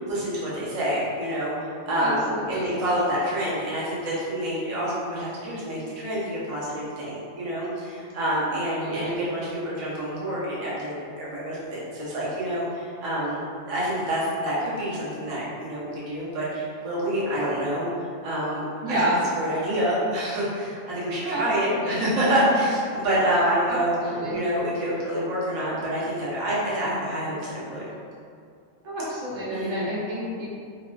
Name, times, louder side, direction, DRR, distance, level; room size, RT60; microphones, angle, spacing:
voice 1, 0.0-1.5 1.9-2.2 2.5-13.4 13.7-17.9 18.2-24.0 24.3-27.9 29.5-29.8, right 1 dB, 40° right, -8 dB, 0.5 m, -27 dB
voice 2, 1.9-2.7 8.8-9.1 18.8-19.2 21.2-21.4 21.7-22.0 24.0-24.4 28.8-30.5, right 1 dB, 85° right, -8 dB, 1.1 m, -29 dB
3.0 x 2.2 x 2.3 m, 2.3 s
omnidirectional pair, 1.2 m